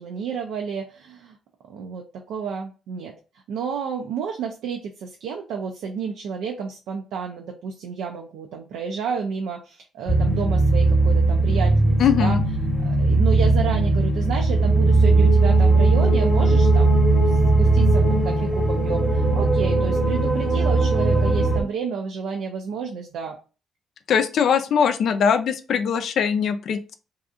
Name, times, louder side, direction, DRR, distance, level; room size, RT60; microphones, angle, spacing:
voice 1, 0.0-1.4 1.7-3.1 3.5-12.4 12.8-23.4, right 6 dB, 85° right, 3 dB, 0.4 m, -31 dB
sound 1, 10.1-21.6, right 2 dB, 15° left, 0.8 m, -18 dB
voice 2, 12.0-12.4 24.1-27.0, left 7 dB, 65° left, 9 dB, 0.3 m, -21 dB
2.7 x 2.3 x 2.4 m, 0.34 s
cardioid pair, 90°, 0 cm